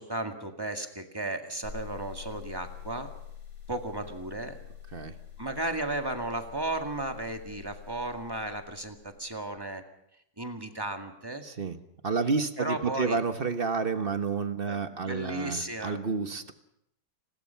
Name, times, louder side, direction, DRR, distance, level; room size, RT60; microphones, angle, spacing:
voice 1, 0.0-3.1 3.7-4.6 5.4-9.8 10.4-11.5 12.6-13.2 14.7-16.0, right 2 dB, 15° right, 5 dB, 1.9 m, -34 dB
sound 1, 1.6-9.4, left 9 dB, 90° left, 7.8 m, -46 dB
voice 2, 11.4-11.8 12.0-16.5, right 4 dB, 35° right, 9 dB, 1.2 m, -30 dB
29.5 x 20.5 x 5.8 m, 0.77 s
omnidirectional pair, 2.0 m